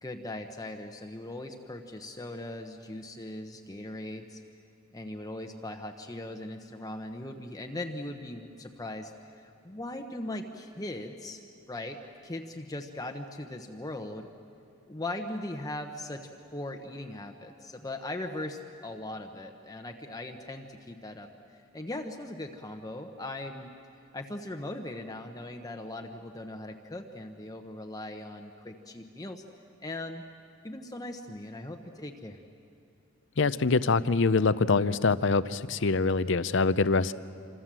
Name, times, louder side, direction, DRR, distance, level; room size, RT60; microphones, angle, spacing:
voice 1, 0.0-4.4 4.9-11.4 11.7-12.0 12.2-14.3 14.9-21.3 21.5-23.7 24.1-29.4 29.8-30.2 30.6-32.4, left 1 dB, 15° left, 4 dB, 1.0 m, -39 dB
voice 2, 33.4-37.1, left 4 dB, 60° left, 15 dB, 0.7 m, -24 dB
27.0 x 26.5 x 7.6 m, 2.6 s
head